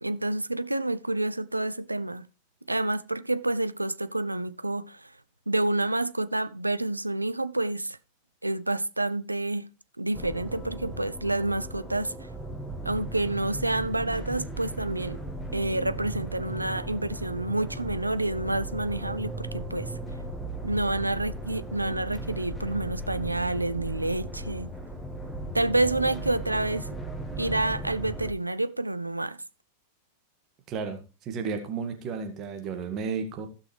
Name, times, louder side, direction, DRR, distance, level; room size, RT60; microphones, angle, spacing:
voice 1, 0.0-2.3 2.7-5.1 5.5-8.0 8.4-9.7 10.0-12.1 12.8-15.2 15.5-19.9 20.6-24.7 25.5-26.9 27.4-29.4, right 2 dB, 85° right, 0.4 m, -28 dB
sound 1, 10.1-28.3, right 1 dB, 10° left, 1.7 m, -37 dB
voice 2, 30.7-33.5, right 5 dB, 35° right, 2.0 m, -33 dB
15.5 x 6.1 x 3.4 m
figure-of-eight pair, 90°, 0 cm